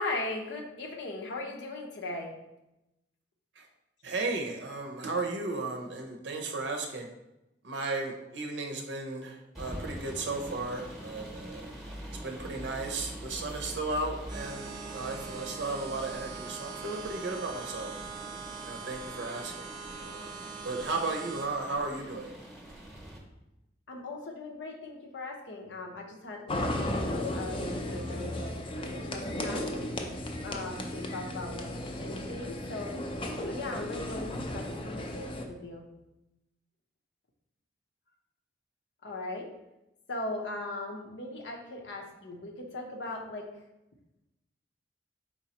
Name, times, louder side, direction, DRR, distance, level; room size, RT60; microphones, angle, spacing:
voice 1, 0.0-2.3 23.9-26.8 27.1-29.8 30.4-33.0 33.5-35.9 39.0-39.5 40.1-43.5, left 2 dB, 75° left, 1 dB, 0.7 m, -38 dB
voice 2, 4.0-7.1 7.6-11.7 12.2-17.9 18.6-19.7 20.0-20.4 20.6-22.4, right 3 dB, 75° right, 2 dB, 0.6 m, -35 dB
sound 1, 9.5-23.2, right 1 dB, ahead, 0.8 m, -44 dB
sound 2, 14.3-21.5, right 5 dB, 25° right, 0.5 m, -42 dB
sound 3, 26.5-35.4, left 1 dB, 30° left, 0.4 m, -35 dB
4.5 x 4.2 x 2.9 m, 0.93 s
head